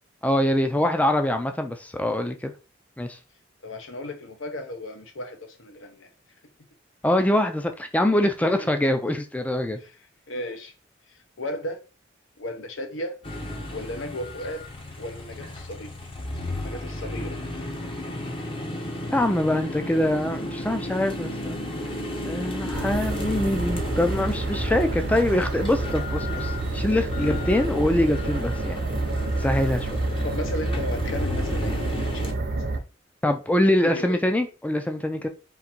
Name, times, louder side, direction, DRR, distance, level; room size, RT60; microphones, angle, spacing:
voice 1, 0.2-2.5 3.0-3.2 7.0-9.8 19.1-21.6 22.2-29.0 29.4-29.9 33.2-35.3, left 1 dB, 10° left, 0.4 m, -24 dB
voice 2, 3.6-6.1 7.0-7.2 8.4-8.7 9.8-9.9 10.3-10.7 11.4-11.8 12.4-13.2 13.7-14.6 15.0-15.9 16.6-17.4 27.1-27.4 30.2-32.6 33.8-34.2, left 1 dB, 80° left, 0.9 m, -35 dB
sound 1, 13.2-32.3, left 1 dB, 30° left, 0.7 m, -33 dB
sound 2, 22.7-32.8, right 2 dB, 60° right, 0.7 m, -29 dB
3.8 x 2.7 x 4.3 m
head